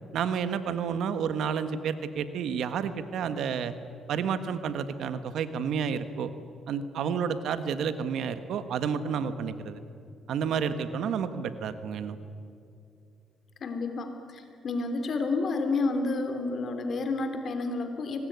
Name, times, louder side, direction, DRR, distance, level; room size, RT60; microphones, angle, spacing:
voice 1, 0.1-3.7 4.1-6.3 6.7-9.8 10.3-12.2, right 7 dB, 75° right, 11 dB, 1.5 m, -30 dB
voice 2, 13.6-18.3, left 3 dB, 55° left, 7 dB, 3.3 m, -30 dB
24.5 x 20.0 x 9.5 m, 2.5 s
cardioid pair, 90°, 0 cm